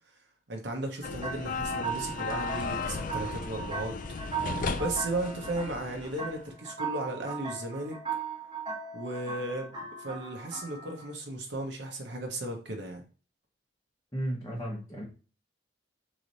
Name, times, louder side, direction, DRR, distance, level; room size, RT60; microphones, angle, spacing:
voice 1, 0.5-3.9 4.8-8.0 8.9-13.0, right 2 dB, 60° right, 2 dB, 0.9 m, -35 dB
sound 1, 1.0-6.4, left 4 dB, 45° left, 0.4 m, -35 dB
sound 2, 1.2-11.1, right 6 dB, 25° right, 1.2 m, -38 dB
voice 2, 14.1-15.0, right 1 dB, 15° left, -4 dB, 0.9 m, -34 dB
3.9 x 3.2 x 3.9 m, 0.36 s
head